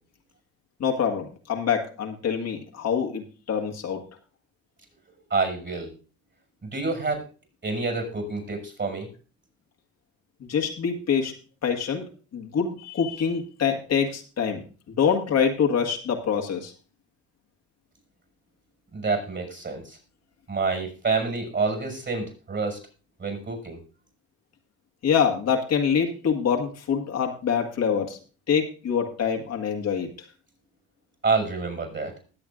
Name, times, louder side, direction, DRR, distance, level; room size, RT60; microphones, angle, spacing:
voice 1, 0.8-4.0 10.4-11.3 11.6-14.6 15.0-16.7 25.0-28.2 28.5-30.1, left 7 dB, 55° left, 4 dB, 1.9 m, -25 dB
voice 2, 5.3-5.9 6.7-7.3 7.6-9.1 18.9-20.0 20.5-22.8 23.2-23.8 31.2-32.1, right 4 dB, 40° right, 3 dB, 6.5 m, -27 dB
20.0 x 7.8 x 2.5 m, 0.36 s
supercardioid pair, 70°, 30 cm